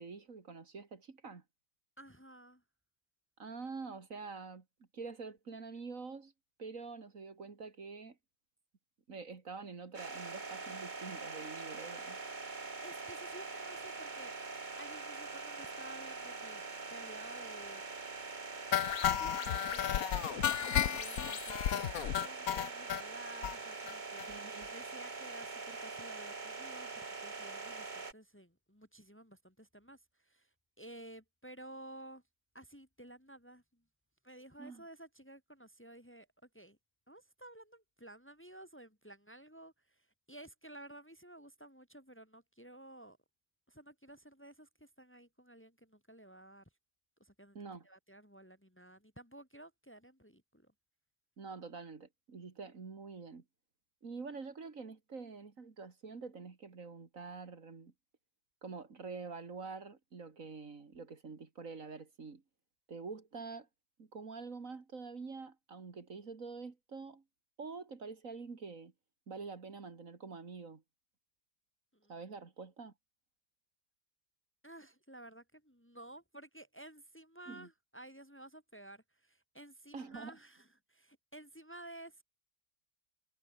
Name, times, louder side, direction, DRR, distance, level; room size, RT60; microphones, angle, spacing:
voice 1, 0.0-1.4 3.4-4.6 4.9-6.3 6.6-8.2 9.1-12.2 24.3-24.7 34.6-34.8 47.5-47.9 51.4-53.4 54.0-57.9 58.6-62.4 62.9-63.7 64.0-67.2 67.6-68.9 69.3-70.8 72.1-72.9 77.5-77.7 79.9-80.4, right 4 dB, 60° right, 2.6 m, -46 dB
voice 2, 2.0-2.6 12.5-14.3 14.8-17.8 18.8-30.5 30.8-32.2 32.5-33.8 34.2-36.3 36.5-36.8 37.1-43.2 43.7-46.6 47.2-47.6 47.8-50.7 71.9-72.1 74.6-82.2, right 1 dB, 10° left, 2.0 m, -53 dB
sound 1, 9.9-28.1, right 4 dB, 30° right, 1.7 m, -44 dB
sound 2, 18.7-23.0 23.4-23.5 23.9-24.0 24.2-24.3 24.6-24.7, left 10 dB, 70° left, 1.3 m, -33 dB
omnidirectional pair, 1.6 m